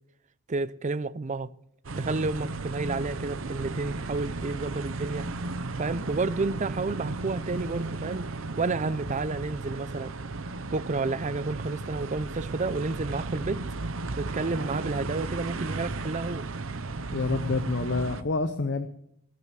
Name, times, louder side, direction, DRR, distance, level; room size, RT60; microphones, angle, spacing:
voice 1, 0.5-1.5 2.0-5.3 5.8-8.3 8.6-10.1 10.7-13.6 14.2-16.5, right 3 dB, 35° right, 0.5 m, -30 dB
sound 1, 1.8-18.2, right 3 dB, 65° right, 0.8 m, -35 dB
voice 2, 17.1-18.9, left 3 dB, 55° left, 0.7 m, -27 dB
19.0 x 7.7 x 7.5 m
head